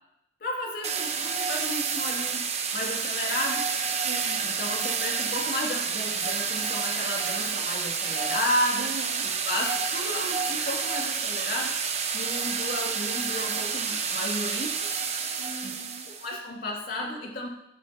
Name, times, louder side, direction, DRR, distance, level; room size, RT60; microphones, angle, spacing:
voice 1, 0.4-2.4 2.7-3.6 4.4-8.9 9.2-11.8 12.1-14.8 15.6-15.7 16.1-17.5, left 1 dB, 50° left, -1 dB, 2.5 m, -33 dB
sound 1, 0.8-16.3, right 6 dB, 35° right, 1.0 m, -29 dB
voice 2, 4.0-4.9 8.8-9.3 15.4-16.1, right 3 dB, 75° right, 2 dB, 0.8 m, -41 dB
16.0 x 9.8 x 2.9 m, 0.85 s
head